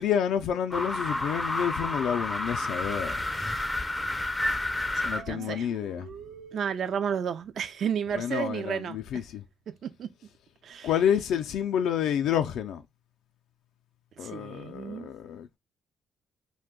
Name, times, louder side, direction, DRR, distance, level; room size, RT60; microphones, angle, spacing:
voice 1, 0.0-3.2 5.0-6.1 8.1-9.4 10.8-12.8 14.2-15.6, left 9 dB, 80° left, 0.3 m, -29 dB
sound 1, 0.7-5.2, left 2 dB, 15° left, 0.4 m, -30 dB
voice 2, 4.9-5.7 6.5-9.0 9.8-10.1 10.6-10.9 14.2-15.1, right 7 dB, 60° right, 0.3 m, -32 dB
sound 2, 5.1-7.1, right 8 dB, 90° right, 0.8 m, -46 dB
2.6 x 2.2 x 3.6 m
cardioid pair, 90°, 0 cm